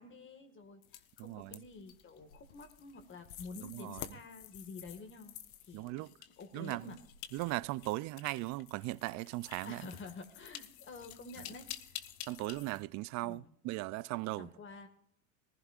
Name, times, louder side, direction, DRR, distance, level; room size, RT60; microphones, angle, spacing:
voice 1, 0.0-5.4 5.6-6.1 6.4-7.0 9.6-12.1 13.2-13.5 14.3-14.9, left 3 dB, 30° left, 1.8 m, -49 dB
sound 1, 0.8-12.8, left 11 dB, 85° left, 1.1 m, -50 dB
voice 2, 1.2-1.6 3.7-4.0 5.7-6.1 6.5-6.9 7.3-9.8 12.3-14.5, right 20 dB, 45° right, 0.4 m, -38 dB
19.0 x 15.0 x 2.4 m
supercardioid pair, 110°, 41 cm